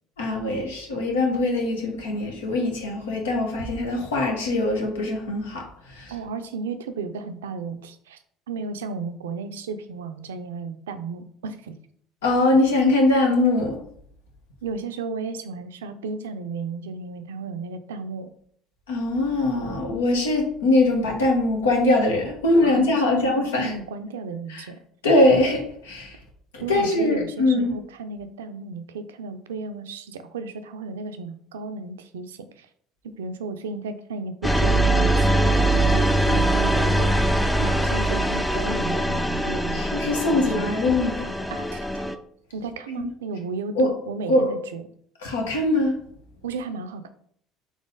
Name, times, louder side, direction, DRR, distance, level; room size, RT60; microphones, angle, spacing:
voice 1, 0.2-6.1 12.2-13.8 18.9-23.7 24.5-24.7 25.0-26.2 26.7-27.7 39.7-41.3 43.0-43.1 43.8-43.9 44.3-44.5 45.2-45.9, left 2 dB, 85° left, 1 dB, 1.0 m, -22 dB
voice 2, 6.1-8.2 8.5-11.8 14.6-18.3 22.6-24.8 26.6-32.7 33.0-37.2 37.6-40.5 41.5-42.0 42.5-44.8 46.4-47.1, right 4 dB, 85° right, 9 dB, 0.4 m, -34 dB
sound 1, 34.4-42.1, right 1 dB, 5° left, 0.4 m, -22 dB
4.0 x 3.0 x 3.9 m, 0.63 s
hypercardioid pair, 70°, 0 cm